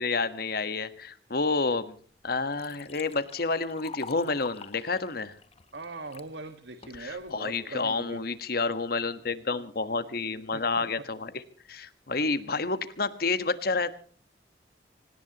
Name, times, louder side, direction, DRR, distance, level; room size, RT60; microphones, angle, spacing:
voice 1, 0.0-1.9 2.2-5.3 7.0-11.4 11.7-14.0, left 3 dB, 55° left, 12 dB, 1.4 m, -29 dB
Liquid, 2.3-6.3 6.8-7.3, left 5 dB, 35° left, 1.0 m, -46 dB
voice 2, 5.7-8.2 10.5-10.8 12.5-12.6, right 3 dB, 75° right, 8 dB, 1.7 m, -41 dB
25.5 x 18.0 x 3.0 m, 0.44 s
head